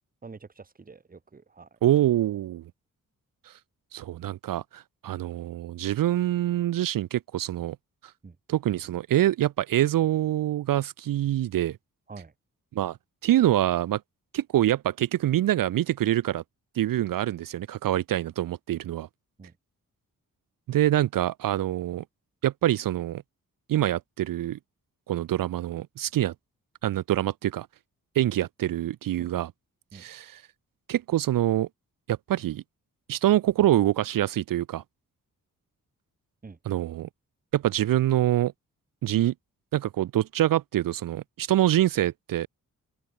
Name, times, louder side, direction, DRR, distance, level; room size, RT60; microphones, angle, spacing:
voice 1, 0.2-1.8 8.2-8.4 12.1-12.3 19.4-19.5 29.2-29.3 29.9-30.0 36.4-36.6, right 4 dB, 25° right, 1.0 m, -46 dB
voice 2, 1.8-2.6 3.5-3.6 3.9-7.8 8.5-11.8 12.7-13.0 13.2-14.0 14.3-16.4 16.8-19.1 20.7-22.0 22.4-23.2 23.7-24.6 25.1-26.3 26.8-27.7 28.2-29.5 29.9-30.4 30.9-31.7 32.1-32.6 33.1-34.8 36.7-37.1 37.5-38.5 39.0-39.3 39.7-42.5, right 13 dB, 70° right, 0.5 m, -25 dB
open air
cardioid pair, 65°, 34 cm